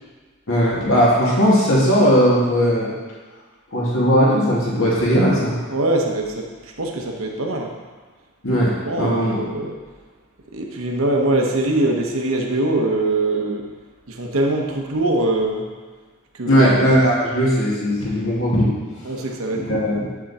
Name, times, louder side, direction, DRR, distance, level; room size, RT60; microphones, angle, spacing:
voice 1, 0.5-2.9 3.7-5.6 8.4-8.7 9.0-9.4 16.5-18.7 19.7-20.1, equal, 65° left, -6 dB, 2.3 m, -17 dB
voice 2, 5.7-6.4 6.8-7.7 8.8-9.8 10.5-13.6 14.1-15.7 16.4-16.7 19.0-19.8, right 2 dB, 70° right, 1 dB, 1.1 m, -22 dB
8.4 x 6.2 x 4.2 m, 1.4 s
head